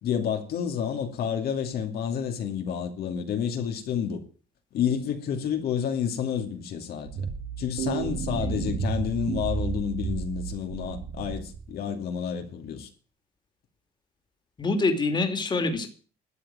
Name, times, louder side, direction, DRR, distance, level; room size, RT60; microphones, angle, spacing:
voice 1, 0.0-4.2 4.7-7.3 7.6-12.9, left 8 dB, 65° left, 2.6 m, -29 dB
sound 1, 7.1-11.7, right 6 dB, 70° right, 2.3 m, -32 dB
voice 2, 14.6-15.9, left 3 dB, 25° left, 2.7 m, -25 dB
12.5 x 8.2 x 9.2 m
cardioid pair, 110°, 17 cm